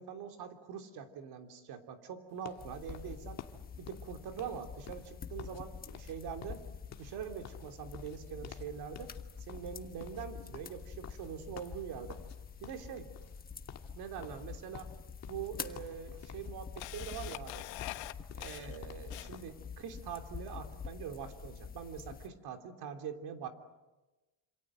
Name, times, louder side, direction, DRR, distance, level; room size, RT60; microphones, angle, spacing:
voice 1, 0.0-3.4 3.8-6.6 7.0-9.1 9.5-12.2 12.6-13.1 13.9-14.9 15.3-17.7 18.3-23.5, right 7 dB, 55° right, 6 dB, 3.3 m, -43 dB
sound 1, 2.4-5.6 5.9-6.2 6.4-8.7 9.0-9.2 9.5-12.4 12.6-13.4 13.7-13.9 14.2-15.5 15.8-16.5 16.8-19.5, left 8 dB, 35° left, 1.8 m, -52 dB
sound 2, 2.6-22.3, left 6 dB, 20° left, 1.3 m, -47 dB
Camera, 14.6-14.7 15.6-15.7 16.1-19.6, left 17 dB, 75° left, 1.4 m, -44 dB
27.5 x 27.5 x 7.7 m, 1.1 s
cardioid pair, 160°, 45 cm